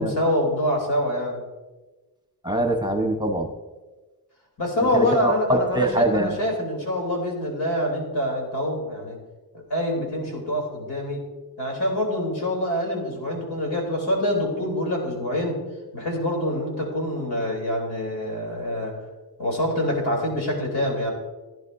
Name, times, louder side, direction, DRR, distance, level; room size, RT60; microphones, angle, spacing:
voice 1, 0.0-1.4 4.6-9.2 9.5-11.2 11.6-15.6 15.9-19.0 19.4-21.1, left 1 dB, 90° left, 0 dB, 3.4 m, -25 dB
voice 2, 2.4-3.5 4.9-6.3, right 1 dB, 10° right, 3 dB, 1.0 m, -23 dB
16.0 x 10.5 x 2.7 m, 1.2 s
wide cardioid pair, 125°, 38 cm